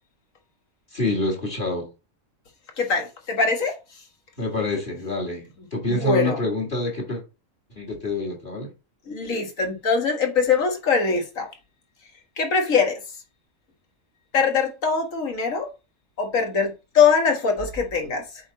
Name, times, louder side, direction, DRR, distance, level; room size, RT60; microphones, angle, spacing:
voice 1, 0.9-1.9 4.4-7.2 7.8-8.7, left 2 dB, 40° left, 2.5 m, -27 dB
voice 2, 2.8-3.8 5.9-6.4 9.1-11.5 12.4-13.0 14.3-15.7 16.2-18.2, left 5 dB, 85° left, 2.0 m, -22 dB
8.5 x 4.3 x 4.0 m
omnidirectional pair, 1.3 m